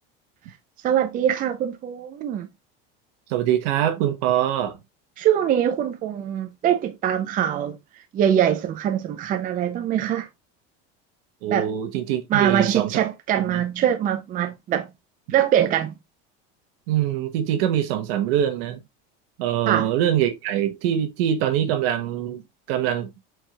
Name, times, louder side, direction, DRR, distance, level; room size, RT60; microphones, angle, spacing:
voice 1, 0.8-2.5 5.2-7.8 8.1-10.3 11.5-11.7 12.3-14.9 15.3-15.9 19.7-19.9, right 10 dB, 30° right, 0.5 m, -23 dB
voice 2, 3.3-4.8 11.4-12.9 13.5-13.6 16.9-18.8 19.4-22.4 22.7-23.1, right 10 dB, 75° right, 1.1 m, -23 dB
4.7 x 4.5 x 2.2 m
supercardioid pair, 140°, 30 cm